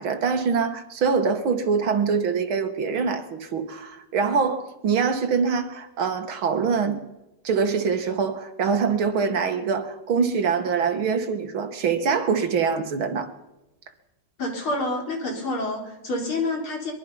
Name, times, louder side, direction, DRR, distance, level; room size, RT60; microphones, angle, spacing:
voice 1, 0.0-7.0 7.4-13.3, right 5 dB, 75° right, 2.5 m, -24 dB
voice 2, 14.4-16.9, left 2 dB, 80° left, 5.0 m, -28 dB
23.0 x 22.5 x 5.5 m
omnidirectional pair, 2.3 m